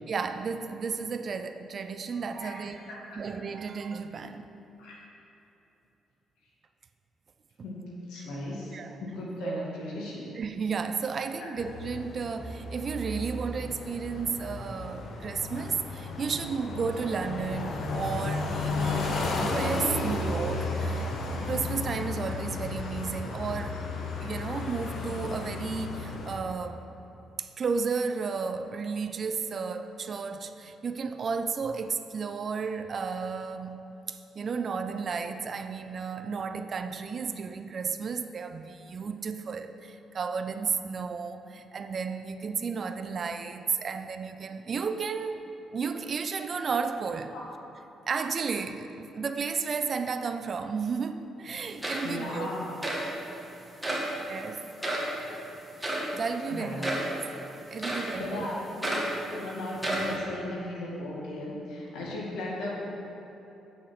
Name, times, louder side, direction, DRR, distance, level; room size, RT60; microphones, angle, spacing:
voice 1, 0.1-4.5 7.6-7.7 8.2-8.3 8.7-9.0 9.4-9.6 10.3-23.8 24.2-26.8 27.4-47.4 48.1-52.5 52.9-53.0 54.3-54.6 55.8-56.7 57.7-58.5, right 5 dB, 50° right, 9 dB, 0.5 m, -33 dB
voice 2, 2.4-3.2 4.8-5.0 7.6-10.2 11.4-11.5 47.3-47.5 52.0-52.9 55.0-55.4 56.5-56.9 57.8-59.0 59.3-62.9, left 1 dB, 90° left, -3 dB, 2.0 m, -37 dB
sound 1, 11.6-26.4, left 3 dB, 65° left, 1.1 m, -33 dB
sound 2, 51.5-51.6 51.8-52.3 52.8-53.1 53.8-54.1 54.8-55.1 55.8-56.1 56.8-57.1 57.8-58.2 58.8-59.2 59.8-60.2, right 1 dB, 5° right, 1.7 m, -31 dB
8.2 x 6.5 x 5.8 m, 3.0 s
cardioid pair, 90°, 0 cm